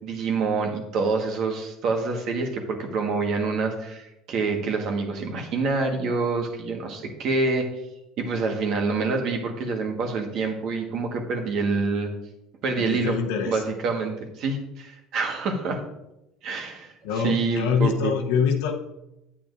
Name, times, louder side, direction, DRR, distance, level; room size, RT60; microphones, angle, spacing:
voice 1, 0.0-7.7 8.2-12.1 12.6-13.2 13.5-15.8 16.4-18.1, right 4 dB, 60° right, 3 dB, 1.7 m, -26 dB
voice 2, 12.8-13.6 17.0-18.7, left 6 dB, 75° left, 5 dB, 1.0 m, -25 dB
8.8 x 8.7 x 2.7 m, 0.90 s
hypercardioid pair, 80°, 0 cm